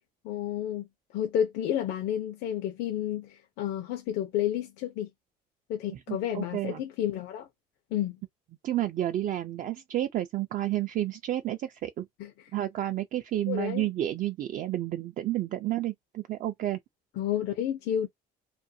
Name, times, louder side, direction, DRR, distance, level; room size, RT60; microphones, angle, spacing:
voice 1, 0.2-0.9 1.1-5.1 5.7-7.5 7.9-8.2 12.2-12.5 13.5-13.9 17.2-18.1, left 10 dB, 85° left, 0.6 m, -31 dB
voice 2, 5.9-6.8 8.6-12.1 12.5-16.8, right 13 dB, 50° right, 0.4 m, -31 dB
2.5 x 2.3 x 2.6 m
cardioid pair, 110°, 17 cm